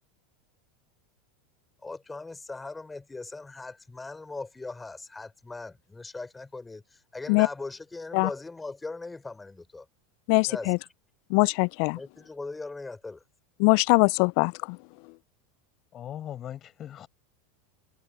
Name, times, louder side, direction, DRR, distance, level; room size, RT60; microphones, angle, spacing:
voice 1, 1.8-9.9 10.5-10.7 11.9-13.2, left 3 dB, 15° left, 4.1 m, -39 dB
voice 2, 10.3-10.8 11.3-12.0 13.6-14.8, left 34 dB, 60° left, 0.4 m, -22 dB
voice 3, 15.9-17.1, left 11 dB, 40° left, 7.8 m, -39 dB
hypercardioid pair, 90°, 0 cm